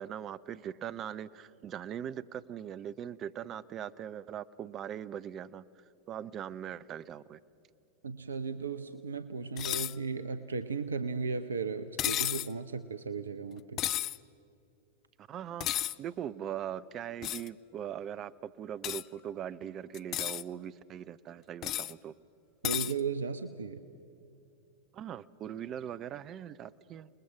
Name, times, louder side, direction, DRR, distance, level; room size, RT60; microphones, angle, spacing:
voice 1, 0.0-5.6 6.1-7.4 15.2-22.1 24.9-27.1, right 9 dB, 30° right, 16 dB, 0.6 m, -40 dB
voice 2, 8.0-13.8 22.6-23.8, right 5 dB, 70° right, 11 dB, 0.7 m, -36 dB
sound 1, 9.6-10.0 12.0-12.5 13.8-14.2 15.6-16.0 17.2-17.5 18.8-19.0 19.9-20.4 21.6-21.9 22.6-22.9, left 13 dB, 35° left, 0.4 m, -32 dB
29.0 x 20.5 x 6.0 m, 2.7 s
figure-of-eight pair, 90°, 0 cm